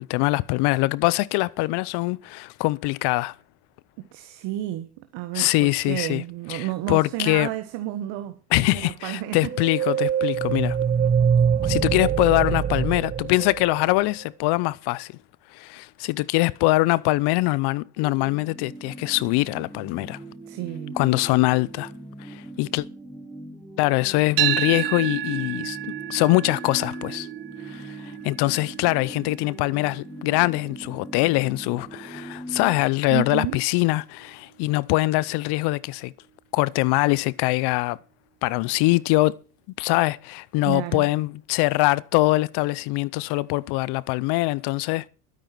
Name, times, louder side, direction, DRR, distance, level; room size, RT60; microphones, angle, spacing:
voice 1, 0.0-3.3 5.3-6.2 6.5-7.5 8.5-10.8 11.6-15.1 15.5-20.2 21.0-21.9 22.2-22.8 23.8-27.3 27.7-36.1 36.5-38.0 38.4-39.4 39.8-45.1, left 21 dB, 55° left, 0.8 m, -23 dB
voice 2, 4.0-8.4 8.7-9.5 20.5-21.0 33.1-33.6 40.6-41.1, right 14 dB, 60° right, 1.5 m, -31 dB
sound 1, 9.5-14.1, right 7 dB, 20° right, 0.8 m, -23 dB
sound 2, 18.0-32.8, right 1 dB, ahead, 2.8 m, -41 dB
sound 3, 24.4-32.6, right 15 dB, 85° right, 1.4 m, -32 dB
12.5 x 9.4 x 6.0 m
supercardioid pair, 110°, 47 cm